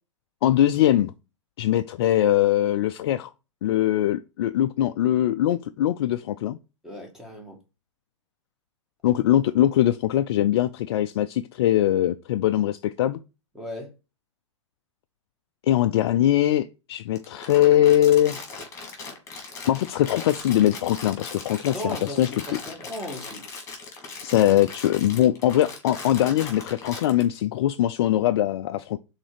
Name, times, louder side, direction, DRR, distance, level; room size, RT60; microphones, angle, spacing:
voice 1, 0.4-1.1 1.6-3.3 3.6-6.6 9.0-13.2 15.6-18.4 19.7-22.4 24.2-29.0, left 12 dB, 55° left, 0.4 m, -21 dB
voice 2, 6.8-7.6 13.5-13.9 21.7-23.5, equal, 5° right, 1.9 m, -36 dB
Crumpling crinkling, 17.1-27.2, left 4 dB, 20° left, 2.6 m, -39 dB
6.1 x 3.9 x 5.0 m
figure-of-eight pair, 105°, 16 cm